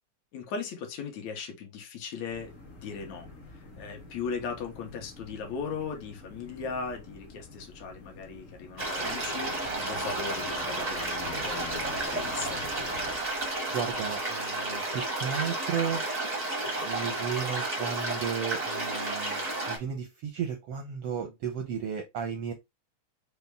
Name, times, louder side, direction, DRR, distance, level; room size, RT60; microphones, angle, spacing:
voice 1, 0.3-3.3 3.5-12.7, left 5 dB, 75° left, 2.2 m, -38 dB
sound 1, 2.3-13.2, left 3 dB, 50° left, 0.8 m, -48 dB
sound 2, 8.8-19.8, right 2 dB, 60° right, 0.4 m, -32 dB
voice 2, 9.6-10.0 13.7-16.0 16.8-22.5, right 7 dB, 80° right, 1.4 m, -34 dB
5.5 x 2.1 x 3.3 m
omnidirectional pair, 3.3 m